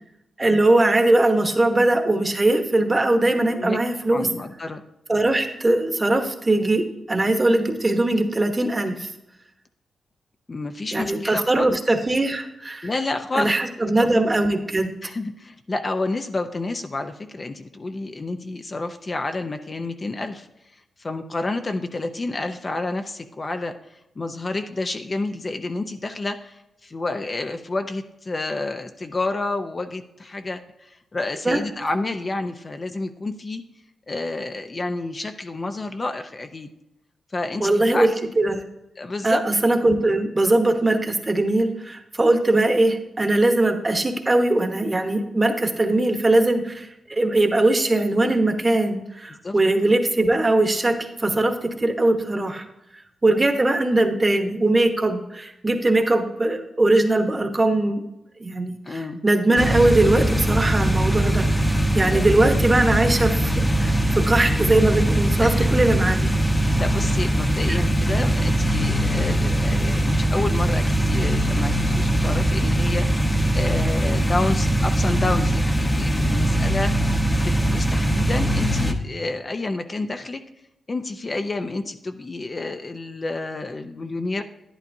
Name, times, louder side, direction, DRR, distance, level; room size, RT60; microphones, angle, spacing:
voice 1, 0.4-4.3 5.1-9.1 10.9-12.9 13.3-14.9 31.4-31.6 37.6-38.1 38.4-38.6 39.2-52.6 53.2-58.0 58.4-66.3 67.7-67.8, right 2 dB, 25° right, 5 dB, 1.1 m, -20 dB
voice 2, 4.1-4.8 10.5-11.8 12.8-13.6 15.0-20.5 21.0-33.6 34.1-36.7 37.3-38.1 39.0-39.4 49.4-49.5 58.9-59.2 62.0-62.2 65.4-65.7 66.8-77.1 77.4-80.4 80.9-84.4, left 2 dB, 35° left, 7 dB, 0.6 m, -29 dB
sound 1, 59.6-78.9, right 1 dB, 15° left, 0.9 m, -21 dB
11.0 x 10.5 x 2.7 m, 0.87 s
cardioid pair, 95°, 0 cm